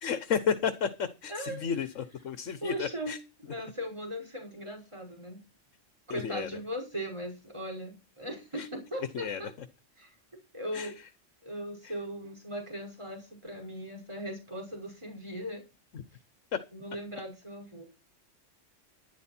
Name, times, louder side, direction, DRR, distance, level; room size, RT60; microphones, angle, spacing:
voice 1, 0.0-3.2 6.1-6.5 8.6-8.7 9.1-9.4 10.7-10.9 11.8-11.9 15.9-16.0, left 7 dB, 80° left, 11 dB, 1.4 m, -32 dB
voice 2, 1.3-1.7 2.6-3.2 3.4-5.4 6.1-9.5 10.0-10.1 10.5-10.9 11.4-15.6 16.7-17.8, equal, 25° right, 2 dB, 5.7 m, -38 dB
12.0 x 10.5 x 4.4 m, 0.29 s
omnidirectional pair, 1.3 m